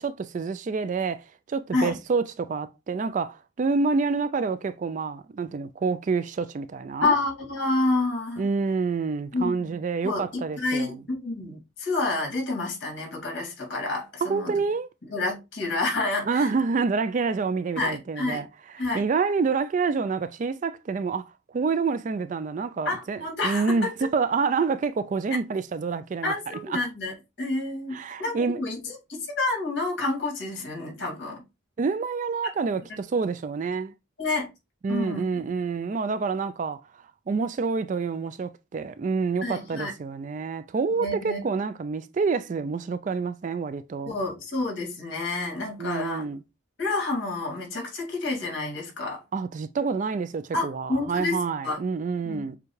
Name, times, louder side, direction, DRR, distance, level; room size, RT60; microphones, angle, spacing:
voice 1, 0.0-7.1 8.4-11.0 14.2-14.9 16.3-18.5 18.9-21.3 21.5-26.3 26.7-26.8 27.9-28.6 31.8-33.9 34.8-36.8 37.3-44.1 45.8-46.4 49.3-52.6, right 4 dB, 40° right, 0.3 m, -27 dB
voice 2, 7.0-8.4 9.3-9.7 10.0-14.5 15.1-16.5 17.8-18.4 18.8-19.0 22.9-23.9 26.2-31.4 34.2-34.5 34.9-35.2 39.4-39.9 41.0-41.4 44.1-46.3 46.8-49.2 50.5-51.8 52.2-52.5, left 2 dB, 65° left, 2.2 m, -29 dB
6.8 x 2.3 x 3.1 m
head